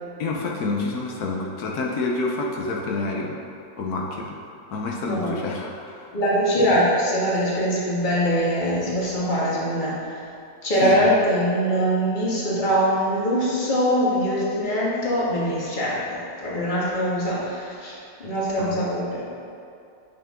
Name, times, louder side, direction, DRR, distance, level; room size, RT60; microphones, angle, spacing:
voice 1, 0.2-3.4 3.8-4.4 4.7-6.1 6.6-6.8 10.8-11.1 18.6-18.8, left 3 dB, 90° left, -1 dB, 1.3 m, -28 dB
voice 2, 6.1-10.2 10.6-19.2, equal, 30° left, -6 dB, 1.7 m, -23 dB
8.5 x 5.8 x 3.7 m, 2.6 s
omnidirectional pair, 1.6 m